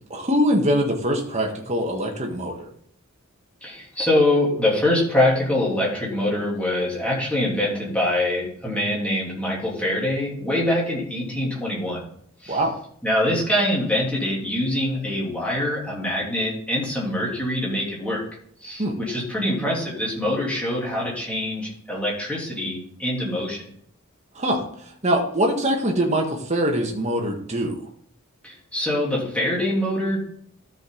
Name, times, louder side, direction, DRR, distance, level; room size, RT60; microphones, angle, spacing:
voice 1, 0.1-2.7 12.5-12.7 18.8-19.0 24.3-27.8, equal, 30° right, 1 dB, 1.6 m, -23 dB
voice 2, 3.6-12.0 12.4-12.6 13.0-18.3 18.6-23.7 28.4-30.2, left 1 dB, 5° left, -5 dB, 3.1 m, -24 dB
13.0 x 5.3 x 4.0 m, 0.63 s
head